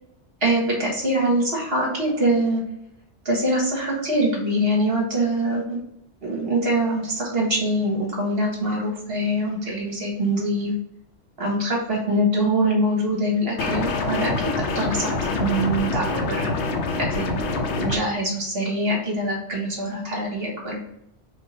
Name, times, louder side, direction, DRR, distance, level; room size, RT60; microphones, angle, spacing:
voice 1, 0.4-2.6 3.2-5.8 6.2-10.7 11.4-16.5 16.9-20.9, right 1 dB, 60° right, -2 dB, 1.7 m, -24 dB
sound 1, 13.6-18.0, left 3 dB, 75° left, 0.9 m, -26 dB
5.0 x 2.5 x 4.2 m, 0.77 s
omnidirectional pair, 1.2 m